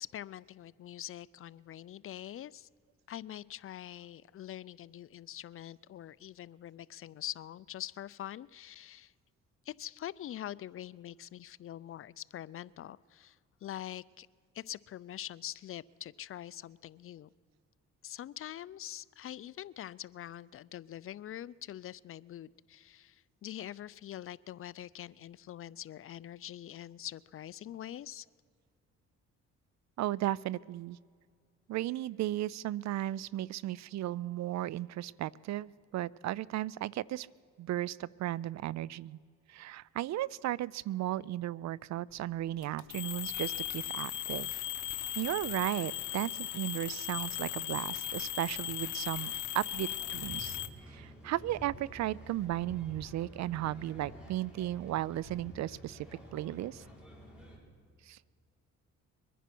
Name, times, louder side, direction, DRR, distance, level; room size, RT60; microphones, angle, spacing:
voice 1, 0.0-2.7 3.1-9.1 9.7-14.3 14.5-17.3 18.0-28.3, left 12 dB, 45° left, 20 dB, 0.4 m, -44 dB
voice 2, 30.0-31.0 31.7-37.3 37.6-39.2 39.5-44.6 44.9-50.6 50.9-56.1 56.3-56.8 58.1-58.2, right 14 dB, 65° right, 23 dB, 0.4 m, -35 dB
sound 1, 42.6-50.7, left 13 dB, 80° left, 0.8 m, -37 dB
sound 2, 49.9-57.6, right 1 dB, 5° right, 4.1 m, -50 dB
23.0 x 10.0 x 6.0 m, 2.1 s
cardioid pair, 90°, 30 cm